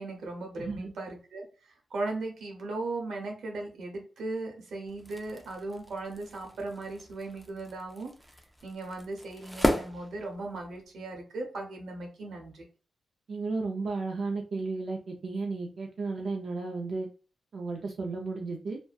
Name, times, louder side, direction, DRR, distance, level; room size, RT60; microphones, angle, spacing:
voice 1, 0.0-1.5 1.9-8.1 8.6-12.6, right 2 dB, 85° right, 1 dB, 0.8 m, -37 dB
voice 2, 0.6-0.9 13.3-17.1 17.5-18.8, right 3 dB, 60° right, 0 dB, 0.4 m, -33 dB
sound 1, 4.9-10.9, equal, 5° left, 0.4 m, -35 dB
2.5 x 2.1 x 2.2 m, 0.36 s
cardioid pair, 95°, 0 cm